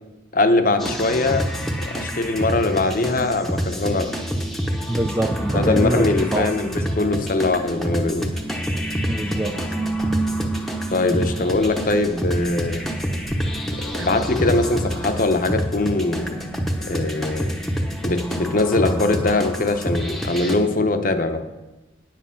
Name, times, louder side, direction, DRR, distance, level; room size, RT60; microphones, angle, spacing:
voice 1, 0.3-1.5 1.8-4.1 5.5-8.3 10.9-12.8 13.7-16.3 16.8-17.5 18.0-21.4, left 2 dB, 45° left, 8 dB, 0.7 m, -21 dB
sound 1, 0.8-20.6, equal, ahead, 0.8 m, -27 dB
voice 2, 4.9-6.7 9.1-9.6, right 1 dB, 15° right, 8 dB, 0.4 m, -24 dB
sound 2, 8.0-15.0, right 3 dB, 75° right, 1.0 m, -32 dB
9.2 x 7.5 x 5.7 m, 1.1 s
head